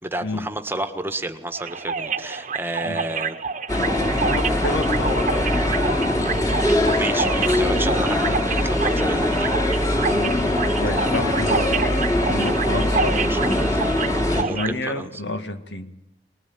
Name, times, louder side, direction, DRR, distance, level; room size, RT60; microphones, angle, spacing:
voice 1, 0.0-3.4 6.9-9.6 13.0-15.1, right 2 dB, 10° right, 7 dB, 1.6 m, -31 dB
sound 1, 1.5-14.7, right 5 dB, 45° right, 1.2 m, -29 dB
sound 2, 3.7-14.4, left 1 dB, 20° left, 2.9 m, -22 dB
voice 2, 4.0-5.5 8.2-8.5 10.0-13.2 14.1-15.9, left 2 dB, 70° left, 8 dB, 2.0 m, -30 dB
24.0 x 20.5 x 9.5 m, 0.85 s
head